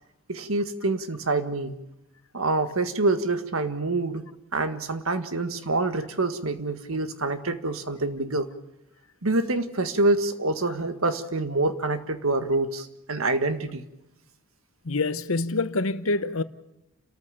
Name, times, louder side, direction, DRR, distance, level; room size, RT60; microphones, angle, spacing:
voice 1, 0.3-1.7 2.3-8.5 9.2-13.8, right 2 dB, 90° right, 1.7 m, -26 dB
voice 2, 14.8-16.4, left 3 dB, 85° left, 1.0 m, -26 dB
30.0 x 14.0 x 7.0 m
head